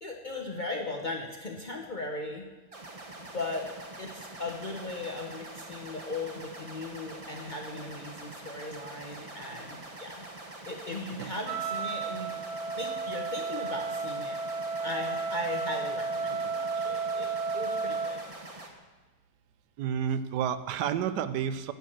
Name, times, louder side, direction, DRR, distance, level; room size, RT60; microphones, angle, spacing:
voice 1, 0.0-2.5 3.3-10.2 10.7-12.4 12.8-14.4 14.8-18.2, left 2 dB, 40° left, 1 dB, 0.7 m, -38 dB
sound 1, 2.7-18.7, right 2 dB, 25° right, 1.0 m, -45 dB
Wind instrument woodwind instrument, 11.4-18.2, right 4 dB, 50° right, 1.2 m, -33 dB
voice 2, 19.8-21.7, right 8 dB, 80° right, 12 dB, 1.2 m, -30 dB
10.0 x 6.4 x 7.6 m, 1.2 s
omnidirectional pair, 1.8 m